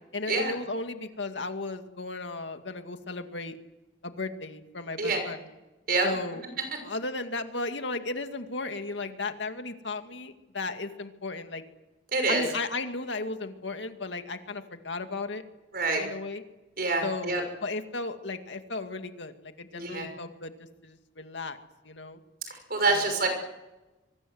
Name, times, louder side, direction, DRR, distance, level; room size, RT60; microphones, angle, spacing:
voice 1, 0.1-3.6 4.0-5.4 6.0-6.4 6.8-11.6 12.3-15.4 16.0-16.4 17.0-20.5 20.8-21.6 21.8-22.2 22.9-23.1, left 3 dB, 80° left, 6 dB, 2.2 m, -35 dB
voice 2, 12.1-12.4 15.7-16.0 16.8-17.4 19.7-20.1 22.5-23.3, right 3 dB, 55° right, 6 dB, 6.2 m, -26 dB
24.5 x 24.0 x 7.9 m, 1.1 s
head